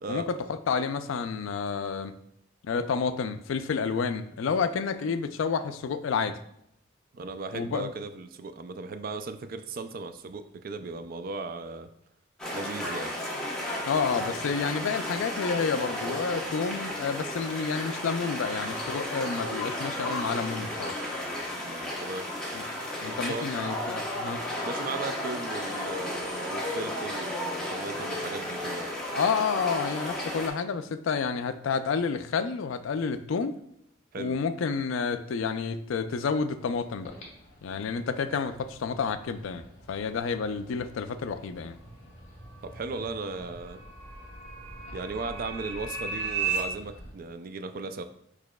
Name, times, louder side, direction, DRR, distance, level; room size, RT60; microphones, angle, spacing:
voice 1, 0.1-2.1 2.6-6.4 7.5-7.9 13.9-20.9 22.5-22.6 23.0-24.4 29.2-33.6 34.2-37.1 37.6-41.8, left 5 dB, 75° left, 10 dB, 0.4 m, -30 dB
voice 2, 7.1-11.9 12.5-13.1 21.5-22.3 23.1-23.5 24.6-28.9 34.1-34.4 42.6-43.8 44.9-48.0, right 3 dB, 45° right, 8 dB, 0.3 m, -37 dB
sound 1, 12.4-30.5, left 1 dB, 5° left, 0.9 m, -33 dB
sound 2, 36.5-47.1, equal, 35° left, 1.2 m, -49 dB
sound 3, 42.3-46.6, right 6 dB, 65° right, 1.5 m, -35 dB
4.8 x 4.7 x 2.2 m, 0.79 s
head